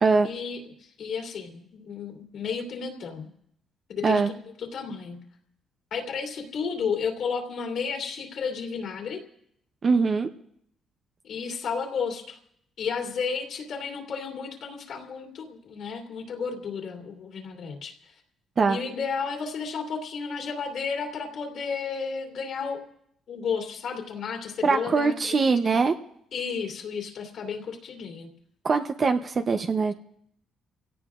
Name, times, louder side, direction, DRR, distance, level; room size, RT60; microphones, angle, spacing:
voice 1, 0.2-3.3 3.9-5.2 5.9-9.2 11.2-12.4 12.8-18.2 18.7-22.8 23.3-25.8 26.3-28.3, left 5 dB, 75° left, 0 dB, 2.8 m, -33 dB
voice 2, 9.8-10.3 18.6-18.8 24.6-25.9 28.6-29.9, right 4 dB, 45° right, 6 dB, 0.8 m, -22 dB
28.5 x 17.0 x 2.5 m, 0.73 s
cardioid pair, 90°, 0 cm